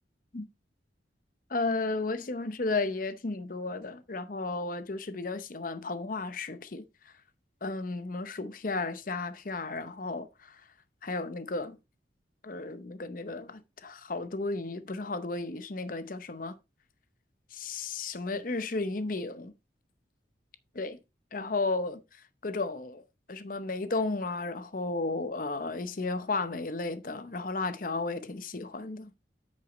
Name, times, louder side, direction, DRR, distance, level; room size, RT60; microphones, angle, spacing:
voice 1, 1.5-7.1 7.6-10.6 11.0-11.8 12.4-16.5 17.5-19.5 20.7-21.0 21.3-29.1, left 3 dB, 45° left, 0.7 m, -34 dB
8.8 x 6.4 x 3.1 m
head